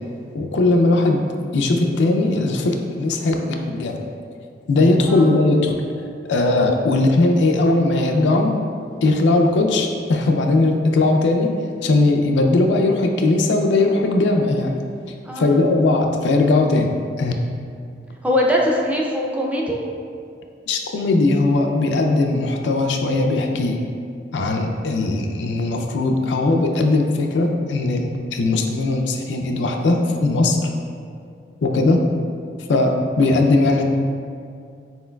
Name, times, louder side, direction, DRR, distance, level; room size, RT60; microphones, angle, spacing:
voice 1, 0.3-1.3 1.5-4.0 4.7-8.5 9.0-11.5 11.8-14.7 15.4-16.9 17.2-17.4 20.7-23.8 24.3-30.7 31.6-32.0 32.7-33.8, left 2 dB, 80° left, 3 dB, 0.4 m, -19 dB
voice 2, 5.1-5.4 15.2-15.7 18.2-19.8, equal, 10° right, -2 dB, 0.4 m, -22 dB
4.4 x 3.8 x 2.2 m, 2.3 s
head